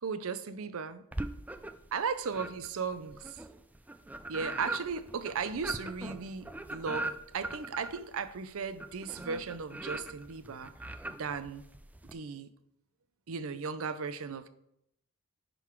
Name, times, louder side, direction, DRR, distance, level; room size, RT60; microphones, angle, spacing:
voice 1, 0.0-1.0 1.9-3.4 4.3-10.7 11.1-11.6 12.0-12.5 13.3-14.5, right 5 dB, 65° right, 12 dB, 0.6 m, -36 dB
sound 1, 1.1-1.9 2.3-12.1, right 2 dB, 5° right, 0.4 m, -40 dB
10.5 x 3.9 x 4.6 m, 0.77 s
head